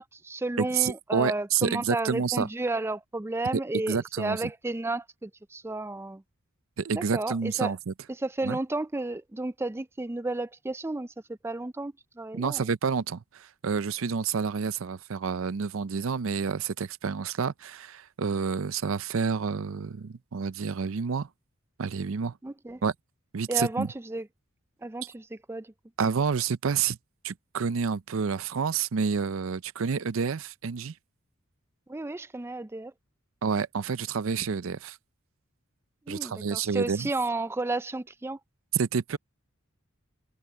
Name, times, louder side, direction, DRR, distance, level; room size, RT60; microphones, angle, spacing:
voice 1, 0.0-6.2 6.9-7.7 8.1-12.7 22.4-22.8 23.5-24.3 24.8-25.7 31.9-32.9 36.1-38.4, right 2 dB, 10° right, 0.4 m, -32 dB
voice 2, 0.6-2.5 3.9-4.4 6.8-7.9 8.4-8.6 12.3-21.3 21.8-22.3 22.8-22.9 23.3-23.9 26.0-27.0 27.2-30.9 33.4-35.0 36.1-37.1 38.7-39.2, right 6 dB, 70° right, 0.5 m, -29 dB
head